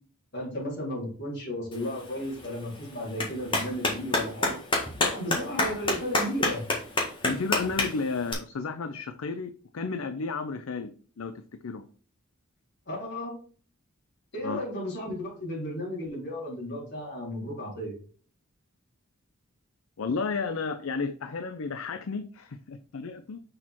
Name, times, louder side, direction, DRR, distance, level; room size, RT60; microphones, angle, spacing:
voice 1, 0.3-4.6 5.0-6.6 12.9-13.4 14.3-17.9, equal, 55° left, -4 dB, 3.6 m, -34 dB
Clapping, 1.7-8.3, left 2 dB, 25° left, 1.7 m, -30 dB
voice 2, 7.2-11.3 11.6-11.9 14.4-14.6 20.0-23.4, left 4 dB, 70° left, 9 dB, 0.5 m, -32 dB
6.4 x 4.5 x 4.3 m, 0.43 s
head